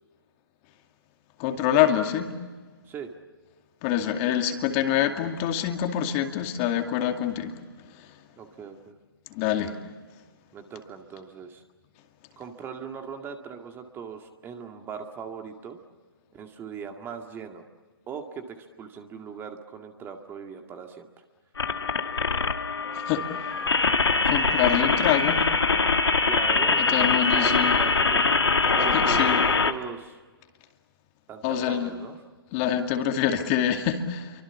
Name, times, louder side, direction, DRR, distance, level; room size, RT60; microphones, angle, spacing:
voice 1, 1.4-2.3 3.8-7.6 9.3-9.7 23.1-23.3 24.2-25.4 26.8-27.8 28.9-29.4 31.4-31.9 32.5-34.4, left 10 dB, 30° left, 5 dB, 2.4 m, -25 dB
voice 2, 8.4-9.0 10.5-11.6 12.4-15.8 16.3-17.6 18.1-21.2 26.3-28.3 28.8-30.2 31.3-32.2, right 6 dB, 15° right, 5 dB, 2.1 m, -39 dB
sound 1, 21.6-29.7, left 4 dB, 85° left, 1.7 m, -23 dB
29.5 x 24.5 x 7.2 m, 1.4 s
hypercardioid pair, 135°, 13 cm